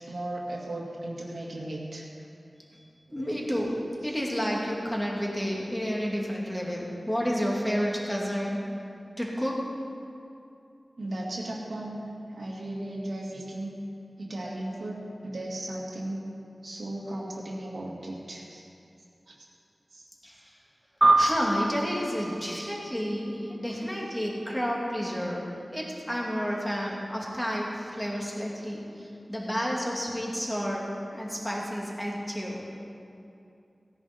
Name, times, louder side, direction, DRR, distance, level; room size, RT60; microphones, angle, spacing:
voice 1, 0.0-2.0 3.1-3.4 11.0-12.1 12.3-13.8 14.2-16.2 16.6-18.6 19.9-20.0, right 1 dB, 85° right, -4 dB, 2.5 m, -36 dB
voice 2, 3.1-3.8 4.0-8.6 9.2-9.6 20.2-20.5 21.2-25.4 25.7-30.9 31.1-32.6, equal, 10° left, -3 dB, 2.6 m, -30 dB
sound 1, 21.0-23.7, right 2 dB, 20° right, 1.6 m, -26 dB
17.5 x 10.5 x 4.5 m, 2.6 s
wide cardioid pair, 80°, 0 cm